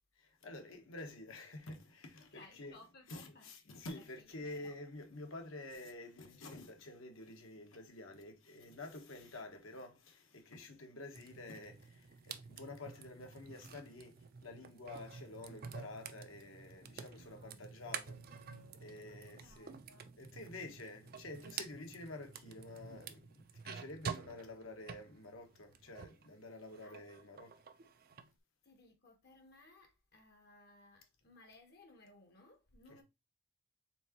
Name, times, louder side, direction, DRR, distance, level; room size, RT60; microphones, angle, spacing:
voice 1, 0.2-2.8 3.1-19.8 20.2-27.6 32.9-33.0, left 2 dB, 70° left, 1.0 m, -50 dB
voice 2, 2.2-4.7 9.1-9.6 17.1-17.7 19.0-20.1 26.8-27.0 28.6-33.0, left 2 dB, 50° left, 0.8 m, -62 dB
sound 1, 11.1-26.3 26.6-28.3, right 6 dB, 45° right, 0.4 m, -49 dB
4.4 x 3.7 x 2.9 m
head